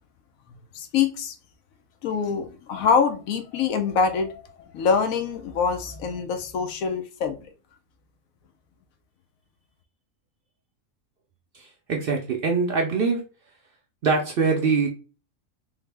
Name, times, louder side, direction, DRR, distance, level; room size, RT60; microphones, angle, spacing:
voice 1, 0.7-1.3 2.0-7.5, left 6 dB, 85° left, 1.0 m, -25 dB
voice 2, 11.5-13.2 14.0-14.9, right 4 dB, 60° right, 0.6 m, -23 dB
3.6 x 2.0 x 3.3 m
omnidirectional pair, 1.4 m